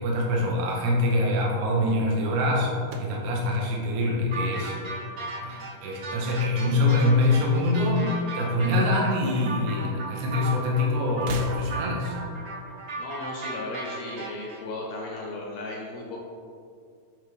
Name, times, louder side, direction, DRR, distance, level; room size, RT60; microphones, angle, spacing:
voice 1, 0.0-2.7 3.0-4.7 5.4-8.1 8.4-12.2, left 1 dB, 70° right, -2 dB, 2.2 m, -24 dB
sound 1, 2.8-5.2 5.5-6.1 7.1-8.1 8.4-8.5 9.6-9.7 11.1-12.1, right 4 dB, 90° right, 1.4 m, -41 dB
sound 2, 4.3-14.6, right 3 dB, 50° right, 1.7 m, -36 dB
voice 2, 13.0-16.2, left 2 dB, 70° left, -2 dB, 1.7 m, -35 dB
9.3 x 3.4 x 3.4 m, 2.3 s
omnidirectional pair, 3.6 m